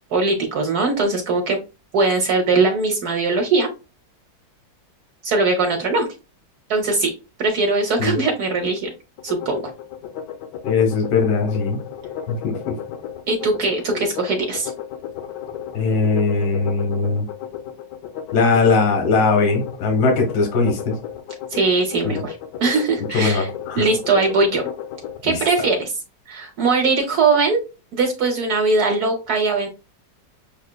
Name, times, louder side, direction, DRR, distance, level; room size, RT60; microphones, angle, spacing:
voice 1, 0.1-1.6 1.9-3.7 5.2-6.1 6.7-7.1 7.4-8.9 9.2-9.7 13.3-14.7 21.5-23.5 23.7-24.7 25.2-25.9 26.3-27.6 27.9-29.7, right 3 dB, 60° right, 3 dB, 1.2 m, -20 dB
sound 1, 9.2-25.2, left 9 dB, 70° left, 1.2 m, -33 dB
voice 2, 10.6-11.8 12.3-12.8 15.8-17.2 18.3-20.9 22.1-22.2 23.1-23.8 25.2-25.4, left 4 dB, 90° left, 2 dB, 1.7 m, -20 dB
6.4 x 2.8 x 2.2 m, 0.29 s
omnidirectional pair, 2.0 m